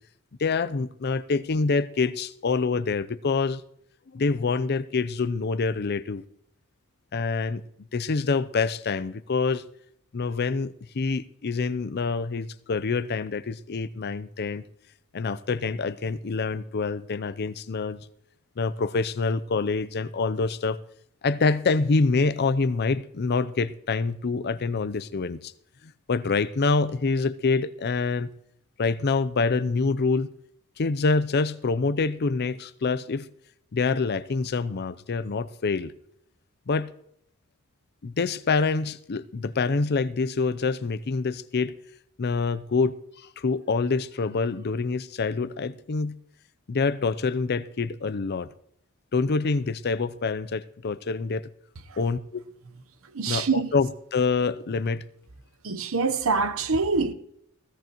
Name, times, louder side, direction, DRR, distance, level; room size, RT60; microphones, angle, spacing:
voice 1, 0.4-3.6 4.1-6.2 7.1-7.6 7.9-9.6 10.1-14.6 15.1-18.0 18.6-20.8 21.2-25.5 26.1-28.3 28.8-30.3 30.8-33.3 33.7-35.9 36.7-36.9 38.0-41.7 42.2-46.2 46.7-48.5 49.1-51.5 52.0-52.4 53.3-55.0, left 4 dB, 50° left, 0.5 m, -26 dB
voice 2, 53.0-53.8 55.6-57.1, right 4 dB, 70° right, 0.9 m, -25 dB
17.0 x 16.0 x 3.0 m
head